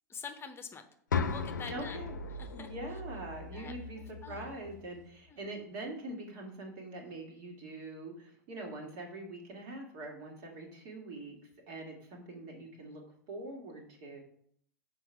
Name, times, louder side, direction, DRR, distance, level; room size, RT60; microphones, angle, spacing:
voice 1, 0.1-0.8 1.3-2.0 2.3-2.7 3.5-4.6 5.3-5.4 12.3-12.4, left 5 dB, 25° left, 7 dB, 0.8 m, -46 dB
sound 1, 1.1-5.1, left 5 dB, 90° left, 0.5 m, -37 dB
voice 2, 1.7-2.1 2.5-11.4 11.7-13.0 13.3-14.2, right 2 dB, 60° right, 0 dB, 2.3 m, -43 dB
5.7 x 4.6 x 5.7 m, 0.64 s
hypercardioid pair, 90°, 10 cm